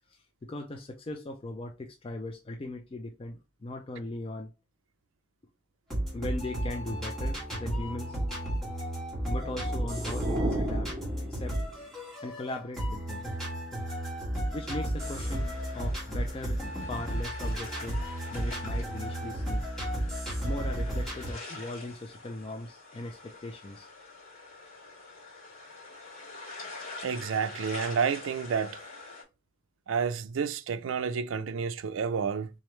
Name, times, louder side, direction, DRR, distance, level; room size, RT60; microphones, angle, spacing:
voice 1, 0.1-4.5 6.1-8.2 9.2-10.9 11.3-11.6 12.2-13.2 14.5-18.0 18.3-19.7 20.4-23.9, left 2 dB, 25° left, 0.4 m, -39 dB
sound 1, 5.9-21.3, right 1 dB, ahead, 1.6 m, -33 dB
sound 2, 9.3-12.0, right 1 dB, 25° right, 0.8 m, -35 dB
sound 3, 15.0-29.2, left 3 dB, 65° left, 2.5 m, -46 dB
voice 2, 27.0-28.8 29.9-32.5, right 6 dB, 65° right, 0.4 m, -30 dB
3.7 x 3.2 x 3.1 m
head